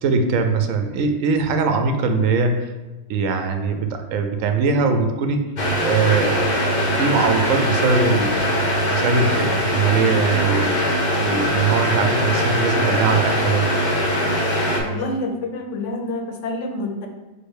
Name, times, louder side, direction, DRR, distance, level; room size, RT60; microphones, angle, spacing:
voice 1, 0.0-2.7 3.1-5.4 5.8-8.4 8.9-10.7 11.2-13.7, right 4 dB, 90° right, 6 dB, 1.0 m, -21 dB
sound 1, 5.6-14.8, equal, 45° left, 0.8 m, -21 dB
voice 2, 14.8-17.1, left 2 dB, 75° left, 4 dB, 0.9 m, -27 dB
4.7 x 2.3 x 4.6 m, 1.1 s
omnidirectional pair, 1.3 m